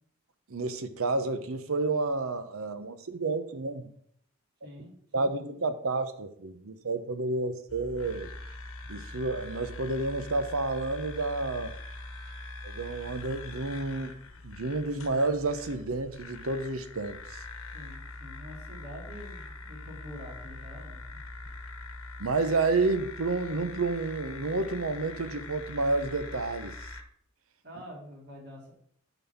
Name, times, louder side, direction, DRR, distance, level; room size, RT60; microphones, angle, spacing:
voice 1, 0.5-3.9 5.1-8.3 8.9-11.8 12.6-14.1 14.4-17.2 22.2-26.8, right 3 dB, 85° right, 0.9 m, -30 dB
voice 2, 4.6-5.3 17.7-21.2 27.6-28.7, equal, 55° right, 3.4 m, -46 dB
sound 1, 7.7-27.0, left 2 dB, 85° left, 1.3 m, -43 dB
9.1 x 4.1 x 7.2 m
head